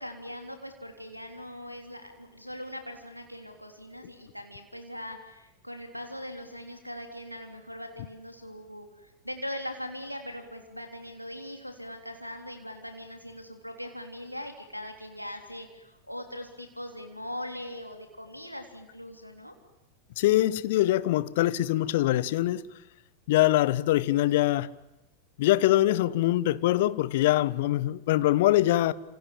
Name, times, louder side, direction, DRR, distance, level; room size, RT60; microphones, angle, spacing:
voice 1, 0.0-19.5, left 1 dB, 90° left, 3.4 m, -41 dB
voice 2, 20.2-22.6 23.3-24.7 25.4-28.9, left 15 dB, 55° left, 1.1 m, -23 dB
28.0 x 28.0 x 7.4 m
figure-of-eight pair, 90°, 0 cm